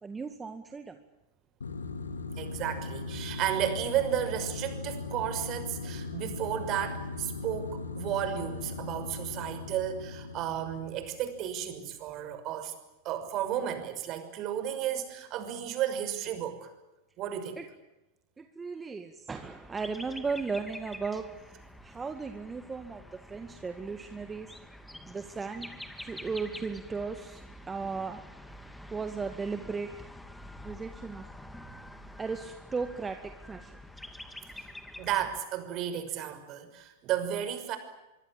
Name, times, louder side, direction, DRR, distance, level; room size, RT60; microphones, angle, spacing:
voice 1, 0.0-1.0 5.9-6.0 17.6-17.7 18.4-21.2 21.8-24.5 25.1-25.7 26.0-28.2 28.9-29.9 30.6-31.3 32.2-33.8, right 4 dB, 15° right, 7 dB, 2.1 m, -36 dB
sound 1, 1.6-11.4, left 4 dB, 85° left, 2.6 m, -39 dB
voice 2, 2.4-12.7 13.0-16.7 17.2-17.6 31.8-32.0 34.5-34.6 35.0-37.8, right 10 dB, 40° right, 9 dB, 6.0 m, -33 dB
sound 2, 19.3-35.4, left 1 dB, 5° left, 2.7 m, -47 dB
24.5 x 24.5 x 8.8 m, 1.0 s
hypercardioid pair, 95°, 0 cm